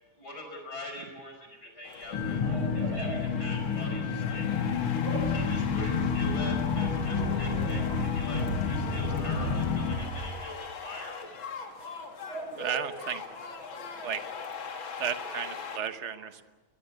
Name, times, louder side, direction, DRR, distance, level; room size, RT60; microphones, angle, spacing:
voice 1, 0.2-2.4 2.7-4.5 5.3-8.4 8.7-11.1, left 1 dB, 45° left, 3 dB, 5.9 m, -42 dB
sound 1, 1.8-15.8, left 5 dB, 65° left, 2.5 m, -41 dB
sound 2, 2.1-10.0, left 6 dB, 80° left, 2.7 m, -29 dB
voice 2, 2.3-3.3 5.0-5.4 7.1-9.5 12.3-14.1 14.7-15.5, right 3 dB, 75° right, 4 dB, 5.5 m, -42 dB
sound 3, 5.2-10.3, right 3 dB, 20° right, 7.6 m, -37 dB
voice 3, 12.6-13.2 14.0-14.2 15.0-16.4, right 8 dB, 40° right, 10 dB, 1.1 m, -33 dB
22.0 x 21.0 x 8.2 m, 1.2 s
omnidirectional pair, 2.4 m